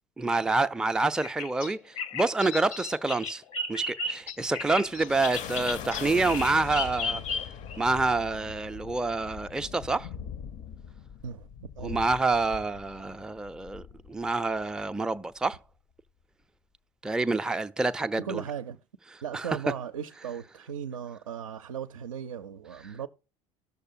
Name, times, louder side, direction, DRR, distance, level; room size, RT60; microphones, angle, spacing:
voice 1, 0.2-3.4 3.7-7.2 7.8-10.1 11.8-15.6 17.0-18.4 19.3-19.5, right 3 dB, 5° right, 0.4 m, -27 dB
Bird vocalization bird call bird song, 1.2-7.8, left 3 dB, 75° left, 0.8 m, -34 dB
sound 1, 4.2-15.0, left 8 dB, 45° left, 0.5 m, -42 dB
voice 2, 18.2-18.8 19.2-23.1, right 8 dB, 80° right, 0.4 m, -37 dB
18.5 x 6.6 x 2.5 m
figure-of-eight pair, 65°, 17 cm